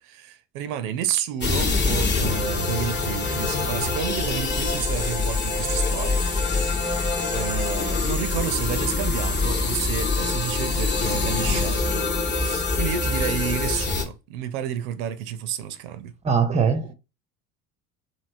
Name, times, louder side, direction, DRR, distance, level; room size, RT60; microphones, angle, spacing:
voice 1, 0.0-6.2 6.6-16.1, right 9 dB, 75° right, 0.5 m, -31 dB
sound 1, 1.4-14.0, left 3 dB, 25° left, 0.9 m, -24 dB
voice 2, 16.2-16.9, right 6 dB, 15° right, 0.5 m, -21 dB
3.0 x 2.7 x 2.6 m
hypercardioid pair, 65°, 43 cm